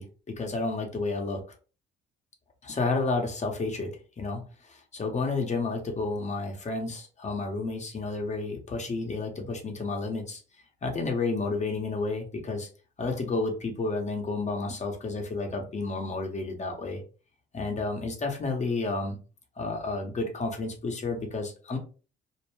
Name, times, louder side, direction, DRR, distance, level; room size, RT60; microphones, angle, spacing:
voice 1, 0.0-1.4 2.6-10.4 10.8-12.7 13.0-17.0 17.5-19.2 19.6-21.8, left 3 dB, 35° left, 2 dB, 0.8 m, -31 dB
2.6 x 2.1 x 3.1 m, 0.35 s
cardioid pair, 90°, 20 cm